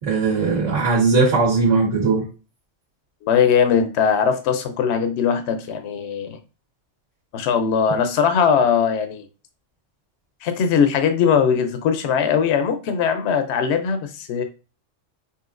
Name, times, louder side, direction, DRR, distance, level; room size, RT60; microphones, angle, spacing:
voice 1, 0.0-2.2, right 4 dB, 75° right, -5 dB, 1.8 m, -19 dB
voice 2, 3.2-6.4 7.3-9.2 10.4-14.4, left 7 dB, 70° left, 7 dB, 0.8 m, -20 dB
5.5 x 2.7 x 2.5 m, 0.33 s
omnidirectional pair, 1.3 m